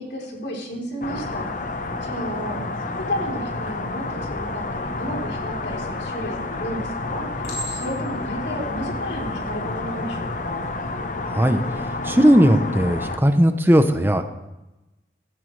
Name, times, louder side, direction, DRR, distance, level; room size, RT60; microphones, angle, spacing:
voice 1, 0.0-1.6 2.0-2.6 3.0-10.7, equal, 85° left, -1 dB, 3.7 m, -32 dB
sound 1, 1.0-13.2, left 2 dB, 45° left, 1.0 m, -30 dB
Chink clink, 5.9-6.5 7.4-8.2 9.0-9.2, equal, 65° left, 4.8 m, -35 dB
voice 2, 11.2-11.6 12.0-14.2, equal, 10° right, 8 dB, 0.7 m, -17 dB
15.5 x 14.5 x 3.3 m, 1.0 s
head